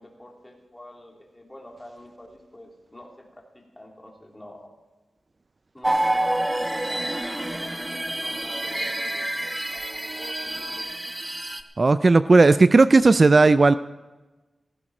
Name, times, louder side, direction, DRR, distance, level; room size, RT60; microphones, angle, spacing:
voice 1, 0.0-4.7 5.7-10.9, left 1 dB, 15° left, 0 dB, 3.4 m, -46 dB
sound 1, 5.8-11.6, right 1 dB, 15° right, 1.0 m, -28 dB
voice 2, 11.8-13.7, right 3 dB, 45° right, 14 dB, 0.4 m, -15 dB
16.5 x 15.0 x 4.3 m, 1.2 s
wide cardioid pair, 85°, 0 cm